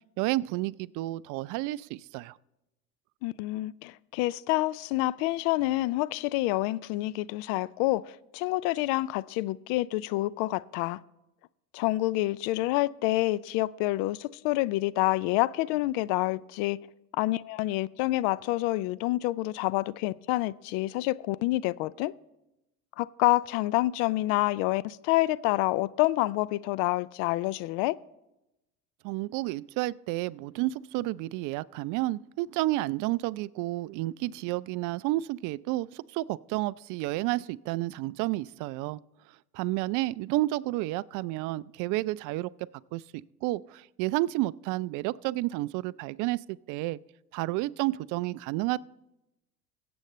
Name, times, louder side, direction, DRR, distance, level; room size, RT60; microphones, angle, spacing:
voice 1, 0.2-2.4 29.0-39.0 39.5-42.5 42.9-47.0 47.3-48.8, right 18 dB, 45° right, 0.4 m, -31 dB
voice 2, 3.2-11.0 11.7-16.8 17.2-22.1 23.0-28.0, left 18 dB, 50° left, 0.5 m, -28 dB
23.5 x 7.9 x 3.2 m
hypercardioid pair, 75°, 48 cm